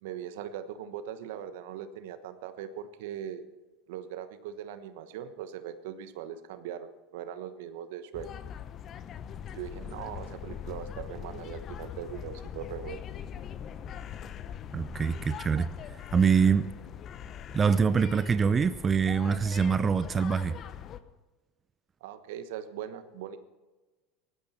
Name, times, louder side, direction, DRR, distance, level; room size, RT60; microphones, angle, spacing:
voice 1, 0.0-3.5 3.9-8.3 9.5-13.0 22.0-23.4, right 9 dB, 70° right, 11 dB, 1.2 m, -40 dB
sound 1, 8.1-21.0, left 8 dB, 45° left, 1.0 m, -42 dB
voice 2, 14.7-15.7 16.1-16.7 17.5-20.5, right 6 dB, 30° right, 13 dB, 0.7 m, -24 dB
18.0 x 14.5 x 4.3 m, 1.2 s
hypercardioid pair, 80°, 0 cm